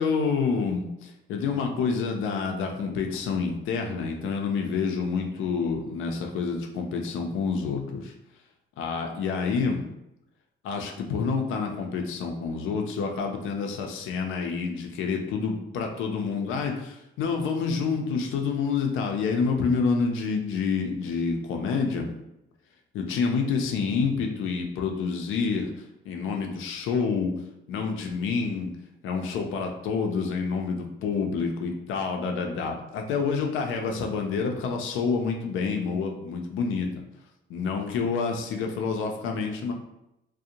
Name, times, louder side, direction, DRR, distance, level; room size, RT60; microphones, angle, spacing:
voice 1, 0.0-8.1 8.8-9.9 10.6-22.1 22.9-25.7 26.1-27.3 27.7-28.7 29.0-36.9 37.5-39.7, left 5 dB, 90° left, 3 dB, 0.5 m, -28 dB
2.5 x 2.1 x 2.8 m, 0.87 s
cardioid pair, 90°, 20 cm